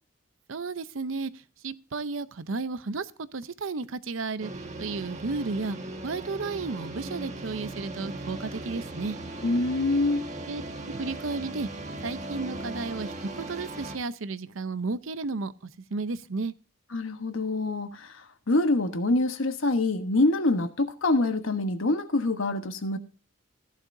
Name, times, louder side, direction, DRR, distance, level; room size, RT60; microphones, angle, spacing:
voice 1, 0.5-4.5 4.8-5.8 6.0-9.2 10.5-11.7 12.0-16.5, right 3 dB, 75° right, 0.7 m, -33 dB
sound 1, 4.4-14.0, right 2 dB, 35° right, 1.6 m, -38 dB
voice 2, 9.4-10.2 16.9-23.0, left 2 dB, 75° left, 1.2 m, -25 dB
16.0 x 11.0 x 2.6 m
head